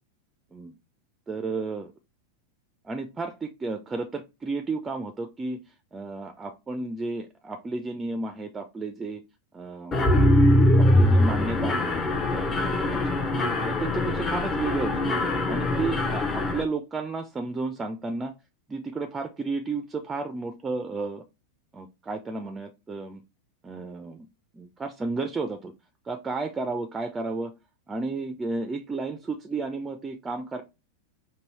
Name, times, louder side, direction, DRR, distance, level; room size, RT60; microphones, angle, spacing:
voice 1, 1.3-1.9 2.9-5.6 5.9-9.2 9.5-10.2 10.8-13.2 13.7-15.2 15.5-18.3 18.7-21.2 21.7-23.2 23.6-24.3 24.5-25.7 26.1-27.5 27.9-30.6, right 3 dB, 15° right, 7 dB, 0.5 m, -32 dB
Mechanisms, 9.9-16.6, left 1 dB, 20° left, 0.8 m, -22 dB
5.3 x 2.6 x 3.1 m, 0.26 s
figure-of-eight pair, 90°, 0 cm